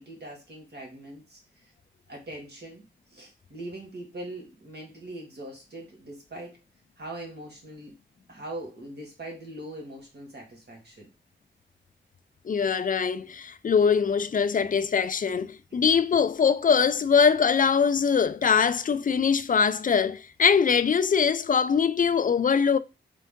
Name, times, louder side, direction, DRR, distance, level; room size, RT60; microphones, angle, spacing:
voice 1, 0.0-1.7 2.1-2.8 3.1-6.6 7.0-7.9 8.3-11.1, right 1 dB, 60° right, 1.9 m, -41 dB
voice 2, 12.5-22.8, left 6 dB, 45° left, 0.4 m, -22 dB
3.7 x 3.6 x 3.6 m
wide cardioid pair, 90°, 19 cm